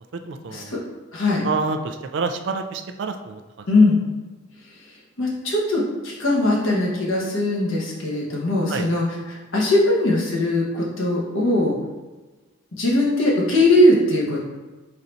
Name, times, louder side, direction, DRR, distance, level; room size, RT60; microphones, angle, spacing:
voice 1, 0.3-0.7 1.4-3.7 8.7-8.9, right 4 dB, 60° right, 7 dB, 0.4 m, -28 dB
voice 2, 1.1-1.5 3.7-4.0 5.2-11.7 12.8-14.4, left 1 dB, 70° left, -4 dB, 1.1 m, -20 dB
4.4 x 4.0 x 2.6 m, 1.2 s
head